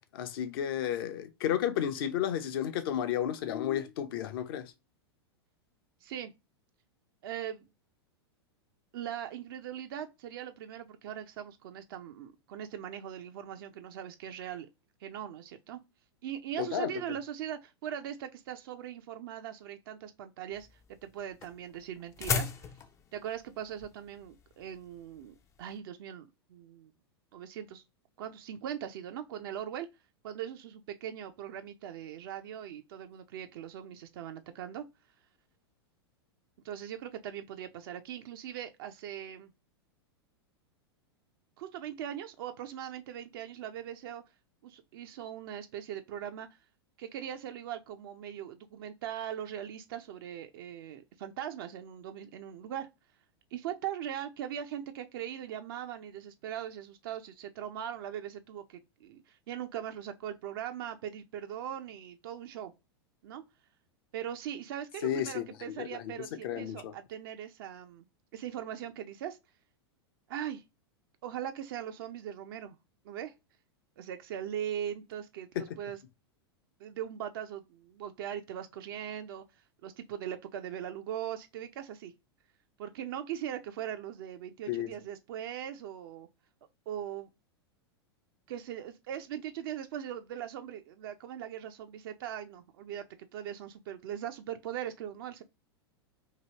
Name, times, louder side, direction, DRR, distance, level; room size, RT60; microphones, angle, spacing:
voice 1, 0.1-4.7 16.6-16.9 65.0-66.1 66.4-66.9 75.6-75.7 84.7-84.9, left 10 dB, 60° left, 0.6 m, -32 dB
voice 2, 6.0-6.3 7.2-7.7 8.9-14.7 15.0-15.8 16.2-20.7 21.0-22.7 23.1-26.9 27.3-27.8 28.2-29.9 30.2-34.9 36.6-39.5 41.6-44.2 44.6-46.5 47.0-52.9 53.5-62.7 63.2-63.4 64.1-68.0 68.3-69.4 70.3-70.6 71.2-72.8 73.0-73.3 74.0-76.0 76.8-79.4 79.8-82.1 82.8-86.3 86.9-87.3 88.5-93.0 93.3-95.4, right 10 dB, 55° right, 0.4 m, -40 dB
sound 1, 20.5-25.7, left 6 dB, 20° left, 0.4 m, -37 dB
2.9 x 2.7 x 2.8 m
figure-of-eight pair, 95°, 14 cm